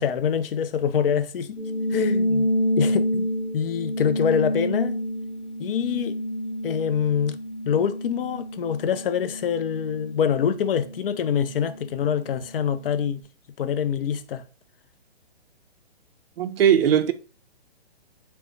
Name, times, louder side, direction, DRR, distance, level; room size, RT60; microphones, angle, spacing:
voice 1, 0.0-1.6 1.9-2.5 2.8-3.3 3.5-5.0 5.6-6.2 6.6-7.4 7.7-13.2 13.6-14.4, left 8 dB, 60° left, 0.5 m, -25 dB
sound 1, 1.6-12.4, equal, 5° left, 0.5 m, -29 dB
voice 2, 16.4-17.1, right 9 dB, 65° right, 0.5 m, -19 dB
4.3 x 2.0 x 3.2 m
hypercardioid pair, 145°, 31 cm